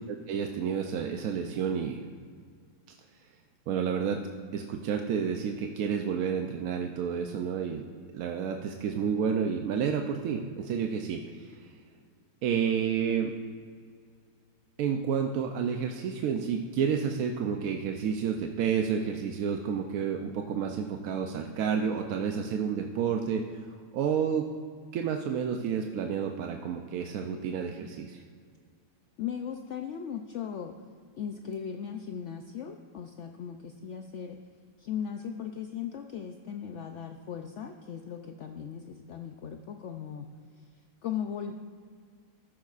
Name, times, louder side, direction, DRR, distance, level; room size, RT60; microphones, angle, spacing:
voice 1, 0.3-2.0 2.9-3.0 3.7-7.8 8.1-11.6 12.4-13.3 14.8-23.4 23.9-24.5 24.9-28.2, right 7 dB, 70° right, 3 dB, 0.9 m, -30 dB
voice 2, 29.2-30.7 31.2-34.4 34.8-40.3 40.5-41.5, left 8 dB, 85° left, 5 dB, 0.6 m, -38 dB
13.5 x 10.5 x 2.4 m, 2.1 s
omnidirectional pair, 1.8 m